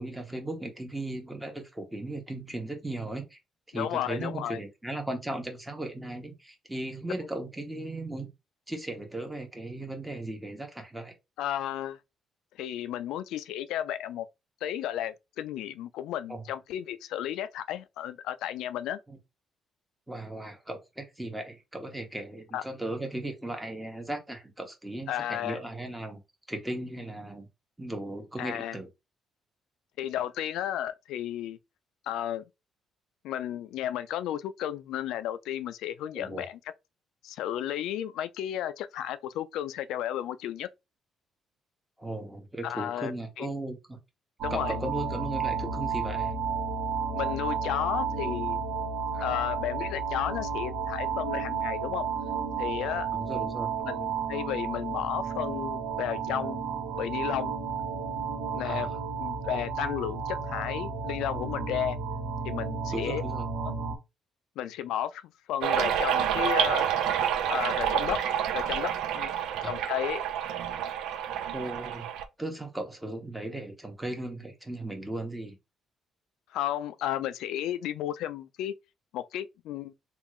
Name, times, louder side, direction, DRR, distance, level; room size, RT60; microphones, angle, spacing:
voice 1, 0.0-3.4 3.7-8.3 8.7-11.1 16.3-16.4 19.1-19.2 20.1-26.2 26.5-27.5 27.8-28.9 36.1-36.5 42.0-44.0 44.5-46.3 49.1-49.3 53.1-53.7 58.6-59.0 62.9-63.5 69.6-69.7 71.5-72.1 72.4-75.6, right 1 dB, 5° right, 1.0 m, -37 dB
voice 2, 3.7-4.6 11.4-12.0 12.6-14.3 14.6-19.0 22.5-22.6 25.1-25.6 28.4-28.8 30.0-31.6 32.1-32.4 33.2-36.6 37.2-40.7 42.6-43.1 43.4-43.5 44.4-44.7 47.1-48.6 49.2-52.1 52.6-53.1 53.8-56.6 57.0-57.6 58.5-58.9 59.2-62.0 62.4-63.2 63.7-63.8 64.6-66.9 67.5-68.2 68.5-69.3 69.6-70.2 76.5-78.7 79.1-79.9, left 11 dB, 85° left, 0.3 m, -33 dB
sound 1, 44.4-64.0, right 5 dB, 65° right, 0.9 m, -32 dB
sound 2, 65.6-72.2, right 9 dB, 85° right, 0.4 m, -28 dB
3.5 x 2.4 x 3.1 m
cardioid pair, 110°, 0 cm